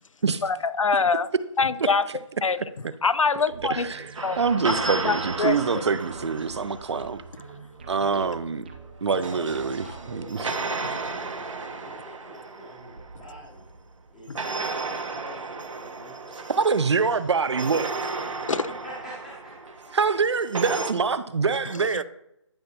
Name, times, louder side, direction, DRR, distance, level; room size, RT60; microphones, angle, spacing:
voice 1, 0.4-1.3 1.6-2.1 2.4-2.6 3.0-3.9 4.2-4.4 4.8-5.6 14.3-14.4 18.5-18.6 21.7-22.0, left 4 dB, 80° left, 0.6 m, -24 dB
sound 1, 3.5-10.4, right 4 dB, 20° right, 0.5 m, -45 dB
voice 2, 3.7-4.1 4.4-7.2 7.9-8.6 9.0-10.5 16.5-18.1 19.9-22.0, right 5 dB, 60° right, 0.6 m, -25 dB
sound 2, 4.1-7.3 8.8-13.8 14.3-20.9, right 3 dB, 80° right, 1.1 m, -34 dB
voice 3, 9.2-11.0 11.5-13.7 14.1-16.5 18.5-18.6 18.8-19.5, equal, 10° left, 0.9 m, -45 dB
12.5 x 5.8 x 2.8 m
figure-of-eight pair, 165°, 16 cm